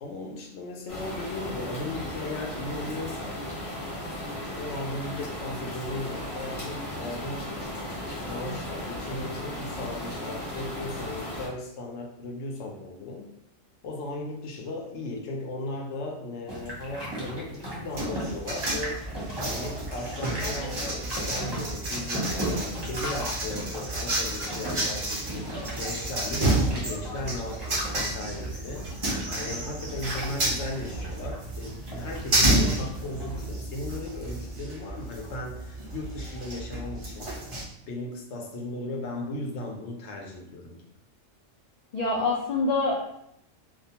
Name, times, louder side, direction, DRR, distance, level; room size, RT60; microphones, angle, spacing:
voice 1, 0.0-3.4 4.6-7.5 8.2-13.3 13.8-19.0 19.4-37.3 37.9-40.8, left 2 dB, 65° left, 1 dB, 0.8 m, -36 dB
sound 1, 0.9-11.5, left 1 dB, 30° left, 0.9 m, -36 dB
sound 2, 16.5-33.5, right 1 dB, 25° right, 0.7 m, -38 dB
sound 3, 17.9-37.6, right 1 dB, 50° right, 0.3 m, -31 dB
voice 2, 41.9-43.0, left 3 dB, 90° left, -6 dB, 0.3 m, -25 dB
2.3 x 2.1 x 2.7 m, 0.74 s
omnidirectional pair, 1.4 m